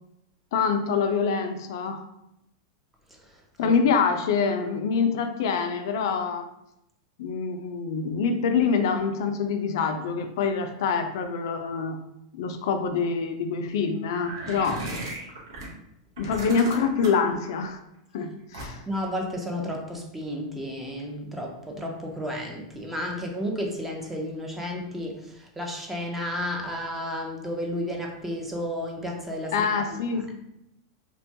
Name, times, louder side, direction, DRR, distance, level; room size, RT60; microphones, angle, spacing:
voice 1, 0.5-2.0 3.6-6.4 7.2-12.0 12.3-14.8 16.2-17.8 18.1-18.8 29.5-30.3, left 5 dB, 70° left, 6 dB, 0.3 m, -25 dB
sound 1, 14.1-15.7 16.2-17.3 18.5-19.0, right 1 dB, 80° right, 0.8 m, -36 dB
voice 2, 18.9-29.7, equal, 10° right, 0 dB, 0.5 m, -32 dB
2.9 x 2.2 x 2.7 m, 0.82 s
supercardioid pair, 135°, 2 cm